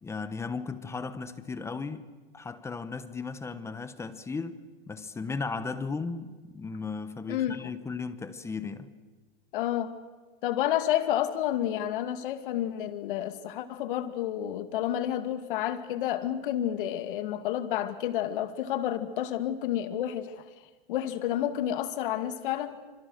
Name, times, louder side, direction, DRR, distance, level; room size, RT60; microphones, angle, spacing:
voice 1, 0.0-2.0 2.3-8.9, left 4 dB, 10° left, 1.0 m, -36 dB
voice 2, 7.3-7.7 9.5-9.9 10.4-20.4 20.9-22.8, left 11 dB, 55° left, 2.5 m, -30 dB
27.5 x 26.0 x 6.5 m
hypercardioid pair, 140°, 31 cm